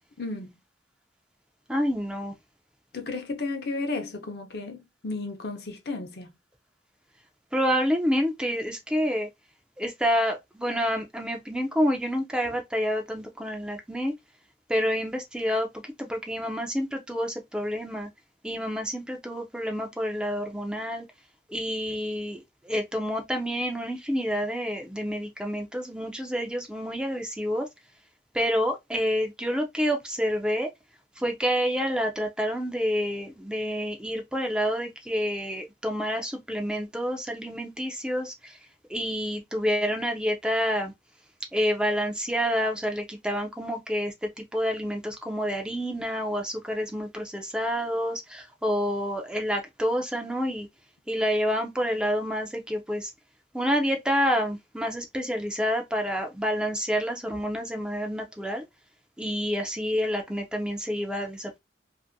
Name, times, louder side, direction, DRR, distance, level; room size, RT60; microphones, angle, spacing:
voice 1, 0.2-0.5 2.9-6.3, left 3 dB, 65° left, 0.7 m, -33 dB
voice 2, 1.7-2.3 7.5-9.3 9.8-14.1 14.7-18.1 18.4-21.1 21.5-27.7 28.3-30.7 31.2-38.6 38.9-40.9 41.5-50.7 51.1-53.1 53.5-58.6 59.2-61.6, equal, 5° right, 0.4 m, -28 dB
2.6 x 2.5 x 2.5 m
head